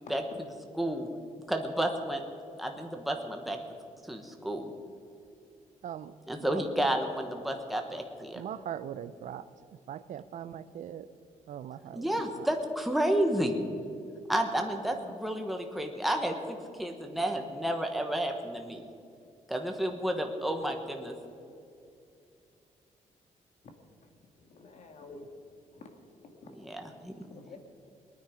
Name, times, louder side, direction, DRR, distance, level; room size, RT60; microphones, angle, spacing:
voice 1, 0.8-1.1 1.5-2.2 2.6-3.6 4.1-4.7 6.3-8.4 11.9-13.6 14.3-18.9 19.5-21.1 26.5-27.1, right 1 dB, ahead, 3 dB, 1.2 m, -31 dB
voice 2, 5.8-6.1 6.4-6.6 8.3-9.5 9.9-11.1 11.5-12.0 12.3-12.5, right 9 dB, 70° right, 14 dB, 0.6 m, -40 dB
voice 3, 24.4-25.3 25.7-25.9 26.4-26.5 27.2-27.6, left 3 dB, 60° left, 4 dB, 1.9 m, -48 dB
21.5 x 9.5 x 5.1 m, 2.5 s
wide cardioid pair, 155°, 13 cm